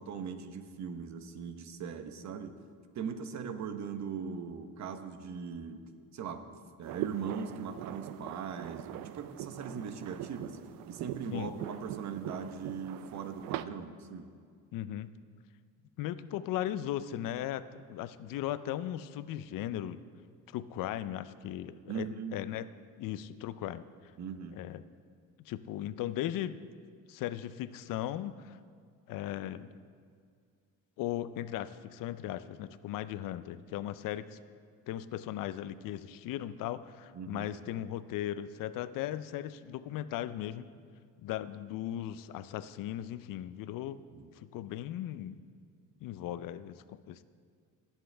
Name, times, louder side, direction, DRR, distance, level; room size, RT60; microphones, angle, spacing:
voice 1, 0.0-2.6 2.9-5.8 6.1-6.4 6.8-10.6 10.9-14.3 21.9-22.4 24.2-24.6 37.1-37.5 44.1-44.3, right 6 dB, 55° right, 8 dB, 1.0 m, -40 dB
sound 1, 6.8-13.6, right 13 dB, 80° right, 0.5 m, -42 dB
voice 2, 14.7-15.1 16.0-20.0 20.5-22.1 22.3-22.7 23.0-23.9 24.5-24.8 25.4-26.6 27.1-28.6 29.1-29.7 31.0-34.4 34.9-40.7 41.2-44.0 44.4-45.4 46.0-47.2, left 12 dB, 75° left, 14 dB, 0.6 m, -37 dB
19.0 x 7.5 x 3.4 m, 2.1 s
cardioid pair, 105°, 33 cm